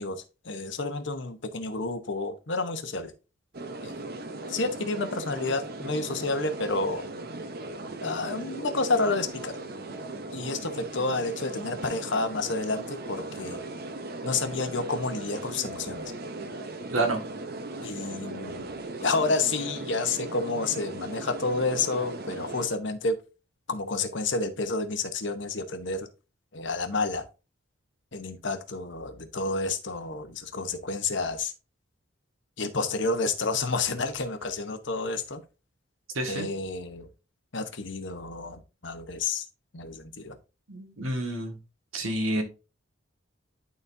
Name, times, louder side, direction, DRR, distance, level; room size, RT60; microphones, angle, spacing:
voice 1, 0.0-3.1 3.8-4.0 4.5-7.0 8.0-9.6 10.3-13.6 14.2-16.0 17.8-23.2 23.7-26.1 26.5-27.3 28.1-31.5 32.6-35.4 36.2-37.1 37.5-39.5 39.7-40.4, left 3 dB, 60° left, 1.0 m, -30 dB
sound 1, 3.5-22.7, right 2 dB, 50° right, 0.7 m, -38 dB
voice 2, 36.2-36.5 40.7-41.6 41.9-42.4, right 2 dB, 80° right, 1.7 m, -28 dB
11.5 x 4.1 x 2.6 m
head